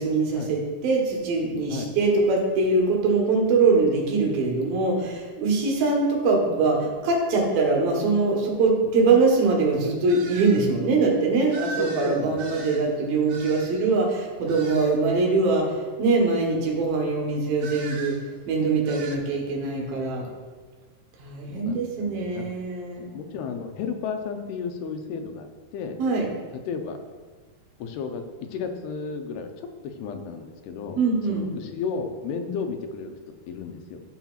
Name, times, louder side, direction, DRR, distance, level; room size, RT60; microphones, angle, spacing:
voice 1, 0.0-20.2 21.2-23.1 26.0-26.3 31.0-31.5, right 3 dB, 70° right, -1 dB, 2.9 m, -23 dB
sound 1, 10.1-10.6 11.5-13.9 14.5-15.0 17.6-18.2 18.8-19.2, right 4 dB, 85° right, 3.1 m, -39 dB
voice 2, 11.8-12.4 14.5-14.6 21.5-22.4 23.0-26.0 26.7-27.0 27.8-28.2 28.5-31.0 31.3-33.2 33.5-34.0, left 5 dB, 90° left, 5 dB, 2.7 m, -33 dB
13.0 x 5.7 x 2.4 m, 1.4 s
omnidirectional pair, 4.5 m